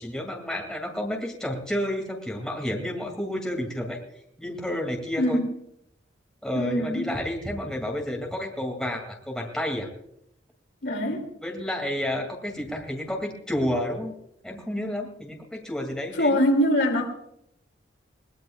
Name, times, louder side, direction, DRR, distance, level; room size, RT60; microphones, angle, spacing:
voice 1, 0.0-4.0 4.4-5.4 6.4-9.9 11.4-14.1 14.4-16.4, left 1 dB, 5° left, 0 dB, 2.3 m, -30 dB
voice 2, 6.5-7.0 10.8-11.3 16.2-17.1, equal, 65° left, 3 dB, 2.6 m, -23 dB
22.0 x 18.5 x 2.4 m, 0.76 s
head